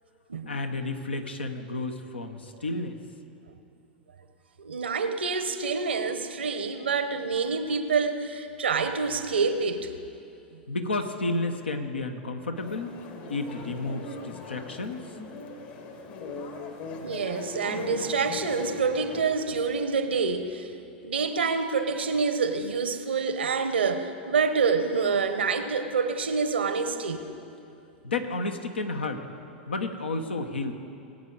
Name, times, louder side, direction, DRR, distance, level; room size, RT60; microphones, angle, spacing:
voice 1, 0.5-3.0 10.7-12.9 13.3-15.0 28.0-29.2 29.7-30.7, left 2 dB, 85° left, 6 dB, 1.0 m, -31 dB
voice 2, 4.6-9.9 17.0-20.7 21.0-27.2, right 5 dB, 80° right, 9 dB, 0.9 m, -27 dB
sound 1, 12.5-19.2, left 3 dB, 55° left, 1.7 m, -39 dB
20.5 x 8.7 x 4.0 m, 2.7 s
hypercardioid pair, 100°, 6 cm